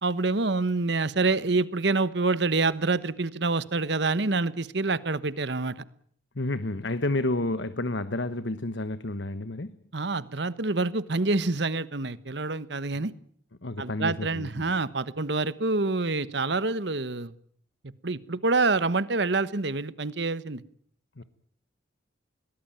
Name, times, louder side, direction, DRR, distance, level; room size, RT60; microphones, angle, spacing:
voice 1, 0.0-5.7 9.9-13.1 13.8-17.3 18.0-20.6, right 3 dB, 65° right, 1.2 m, -27 dB
voice 2, 6.3-9.7 12.9-13.2 13.6-14.7 21.2-21.3, left 2 dB, 70° left, 1.2 m, -30 dB
21.5 x 20.0 x 9.1 m
head